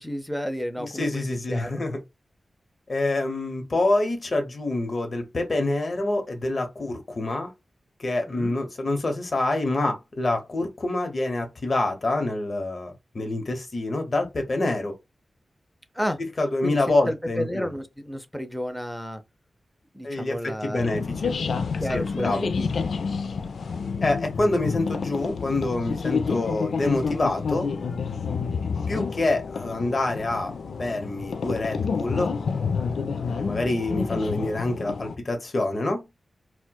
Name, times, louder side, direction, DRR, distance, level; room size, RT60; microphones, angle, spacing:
voice 1, 0.0-1.8 8.3-8.5 15.9-16.2 16.6-19.2 19.9-21.0 21.8-22.9, equal, ahead, 0.6 m, -32 dB
voice 2, 0.8-2.0 2.9-7.5 8.0-14.9 16.4-17.7 20.0-21.3 21.9-22.5 24.0-27.7 28.9-30.5 30.8-32.3 33.2-36.0, left 2 dB, 50° left, 0.9 m, -26 dB
sound 1, 20.8-35.2, left 5 dB, 85° left, 0.3 m, -29 dB
4.3 x 2.2 x 2.2 m
wide cardioid pair, 90°, 0 cm